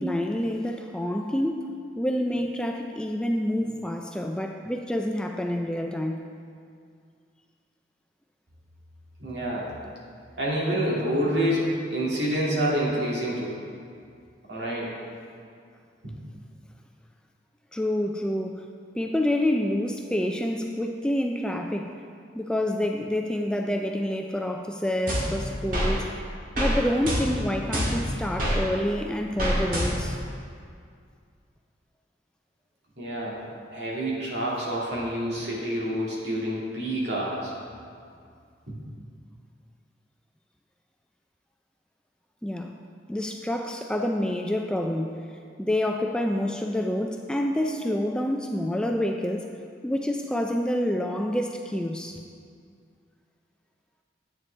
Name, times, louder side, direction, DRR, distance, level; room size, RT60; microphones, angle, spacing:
voice 1, 0.0-1.7 2.0-6.2 17.7-18.7 18.9-21.9 22.3-26.1 26.6-30.2 42.4-42.7 43.1-45.3 45.6-49.6 49.8-52.2, left 1 dB, 5° left, 3 dB, 0.3 m, -27 dB
voice 2, 9.2-9.7 10.4-13.5 14.5-14.9 16.0-16.1 33.0-33.4 33.7-37.5 38.7-38.8, right 1 dB, 65° right, -5 dB, 2.1 m, -27 dB
sound 1, 25.1-25.9 26.5-26.8 27.1-28.6 29.4-30.2, equal, 50° right, 1.8 m, -26 dB
9.8 x 8.4 x 3.3 m, 2.3 s
head